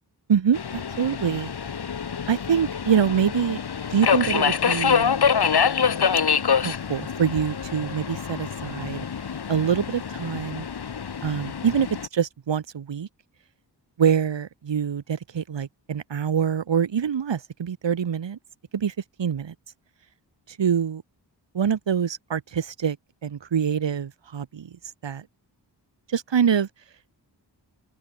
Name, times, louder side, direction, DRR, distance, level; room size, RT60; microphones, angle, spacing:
voice 1, 0.3-1.5 2.3-3.6 3.9-5.2 6.6-9.1 9.5-10.7 11.2-11.9 12.1-13.1 14.0-18.4 18.7-18.9 19.2-19.5 20.5-21.0 21.5-23.0 23.2-24.8 25.0-25.2 26.1-26.7, right 7 dB, 85° right, 3.5 m, -25 dB
Subway metro underground, 0.5-12.1, left 6 dB, 65° left, 2.7 m, -26 dB
open air
wide cardioid pair, 105°, 42 cm